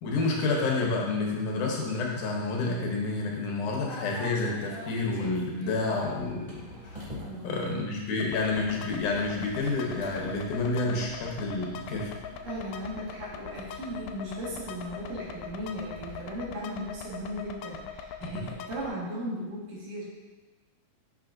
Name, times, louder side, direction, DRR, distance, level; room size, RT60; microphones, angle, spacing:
voice 1, 0.0-6.9 7.4-12.1 18.2-18.5, left 3 dB, 70° left, -1 dB, 2.4 m, -29 dB
sound 1, 3.8-16.5, equal, 15° right, 2.1 m, -48 dB
voice 2, 7.2-7.7 12.4-20.0, equal, 75° right, -6 dB, 3.4 m, -37 dB
sound 2, 8.2-18.9, left 6 dB, 90° left, 2.2 m, -42 dB
8.6 x 6.6 x 2.6 m, 1.2 s
omnidirectional pair, 3.9 m